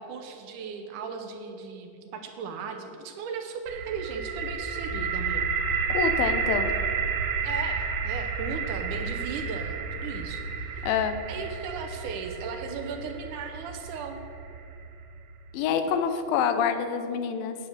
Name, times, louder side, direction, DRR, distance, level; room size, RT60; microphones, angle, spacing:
voice 1, 0.0-5.5 7.4-10.9 11.3-14.2, right 5 dB, 70° right, 5 dB, 2.2 m, -37 dB
sound 1, 3.7-15.5, right 5 dB, 85° right, 1.2 m, -31 dB
voice 2, 5.9-6.7 10.8-11.2 15.5-17.6, left 7 dB, 90° left, 9 dB, 2.6 m, -26 dB
9.7 x 9.4 x 7.2 m, 2.7 s
omnidirectional pair, 4.0 m